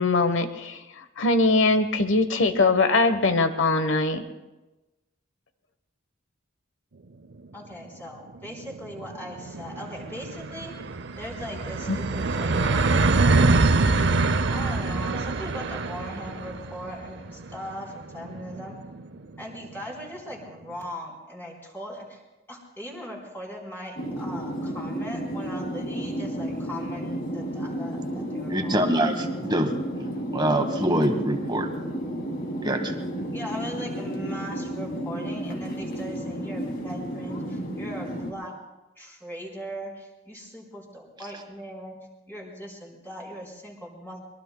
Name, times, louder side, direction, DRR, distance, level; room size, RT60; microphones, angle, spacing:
voice 1, 0.0-4.2 11.9-12.0, left 3 dB, 65° left, 10 dB, 1.1 m, -22 dB
voice 2, 7.5-10.7 11.2-13.7 14.5-18.8 19.4-22.2 22.5-28.9 33.3-38.5 39.0-42.0 42.3-44.2, equal, 10° left, -4 dB, 4.0 m, -39 dB
sound 1, 7.5-7.6 7.9-8.0 8.3-19.7, right 3 dB, 60° right, 0.7 m, -25 dB
sound 2, 24.0-38.3, right 1 dB, 50° left, 2.4 m, -32 dB
voice 3, 28.5-30.1 30.3-31.7 32.6-32.9, right 1 dB, 20° right, 6 dB, 1.4 m, -25 dB
23.5 x 22.0 x 2.3 m, 1.1 s
head